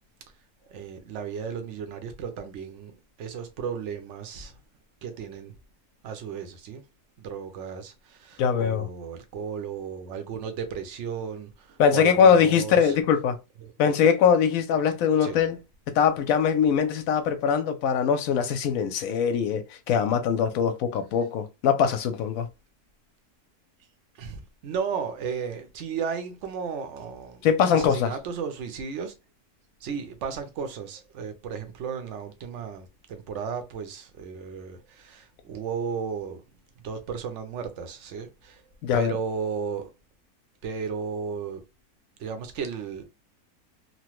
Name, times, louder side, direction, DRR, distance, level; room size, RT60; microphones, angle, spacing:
voice 1, 0.6-4.6 5.0-5.6 6.0-6.8 7.2-13.0 13.6-13.7 15.2-15.4 24.1-27.4 27.7-29.1 29.8-36.4 36.8-38.6 38.9-39.9 40.6-41.6 42.2-43.0, right 6 dB, 60° right, 0.9 m, -34 dB
voice 2, 8.4-8.9 11.8-13.4 13.8-15.6 15.9-22.5 27.4-28.1 38.8-39.1, left 7 dB, 70° left, 0.9 m, -22 dB
3.0 x 2.1 x 3.0 m
omnidirectional pair, 1.6 m